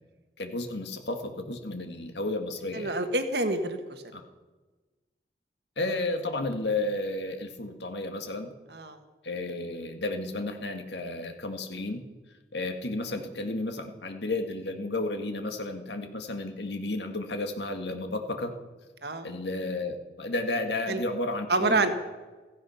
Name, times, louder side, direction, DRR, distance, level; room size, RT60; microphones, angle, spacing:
voice 1, 0.4-2.9 4.1-4.2 5.8-8.5 9.2-12.0 12.5-18.5 19.2-21.9, left 2 dB, 80° left, 5 dB, 1.8 m, -32 dB
voice 2, 2.7-4.0 8.7-9.0 19.0-19.3 20.9-21.0 21.5-21.9, right 2 dB, 70° right, 7 dB, 1.6 m, -27 dB
16.0 x 15.5 x 5.7 m, 1.2 s
head